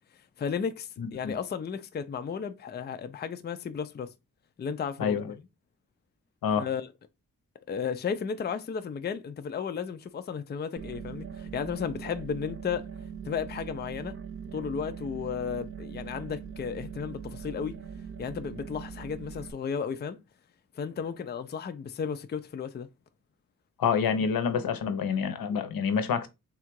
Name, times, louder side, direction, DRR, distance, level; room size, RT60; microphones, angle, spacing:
voice 1, 0.4-4.1 4.6-5.4 6.6-6.9 7.7-12.9 13.2-14.2 14.5-17.8 18.2-20.2 20.8-22.9, left 6 dB, 30° left, 0.4 m, -34 dB
voice 2, 1.0-1.4 5.0-5.3 6.4-6.7 23.8-26.3, left 6 dB, 85° left, 0.7 m, -27 dB
sound 1, 10.8-19.5, right 7 dB, 40° right, 0.5 m, -41 dB
3.6 x 2.4 x 4.5 m
wide cardioid pair, 100°, 34 cm